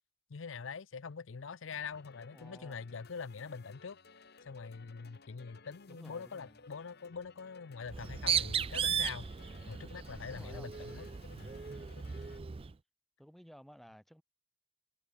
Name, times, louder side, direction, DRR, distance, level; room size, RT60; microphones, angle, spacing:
voice 1, 0.3-4.0 4.4-9.3 9.7-11.1, left 5 dB, 70° left, 0.6 m, -44 dB
sound 1, 1.7-12.4, left 4 dB, 55° left, 2.3 m, -59 dB
voice 2, 2.3-2.8 5.9-6.6 10.3-11.3 12.3-12.6 13.2-14.2, equal, ahead, 2.1 m, -56 dB
Bird, 7.9-12.7, right 8 dB, 30° right, 0.4 m, -36 dB
head